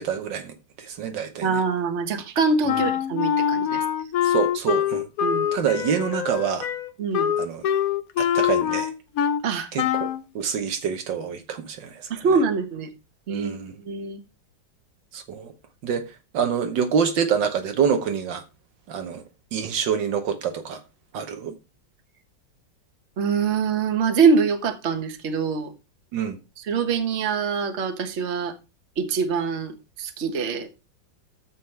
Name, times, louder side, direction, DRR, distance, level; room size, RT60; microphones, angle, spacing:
voice 1, 0.0-1.6 2.7-2.8 4.2-5.1 5.5-6.7 7.4-7.6 8.2-8.9 9.7-10.1 10.3-12.2 13.3-13.8 15.1-15.5 15.8-18.4 18.9-19.2 19.5-20.8 21.1-21.5 26.1-26.4, right 7 dB, 75° right, 1.6 m, -26 dB
voice 2, 1.4-3.8 5.2-5.5 7.0-7.3 9.4-9.7 12.1-12.9 13.3-13.5 13.8-14.2 23.2-25.7 26.7-28.5 29.0-30.7, right 5 dB, 40° right, 1.4 m, -24 dB
Wind instrument woodwind instrument, 2.7-9.5 9.8-10.2, left 9 dB, 65° left, 0.9 m, -24 dB
9.8 x 7.5 x 3.3 m
omnidirectional pair, 2.0 m